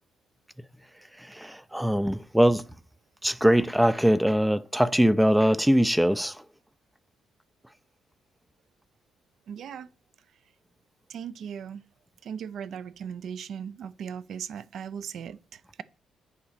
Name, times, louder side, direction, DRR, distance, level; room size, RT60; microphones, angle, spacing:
voice 1, 1.2-2.7 3.2-6.4, equal, 5° right, 0.4 m, -22 dB
voice 2, 9.5-9.9 11.1-11.8 12.2-15.8, right 8 dB, 60° right, 0.5 m, -38 dB
8.6 x 4.1 x 6.5 m
cardioid pair, 135°, 0 cm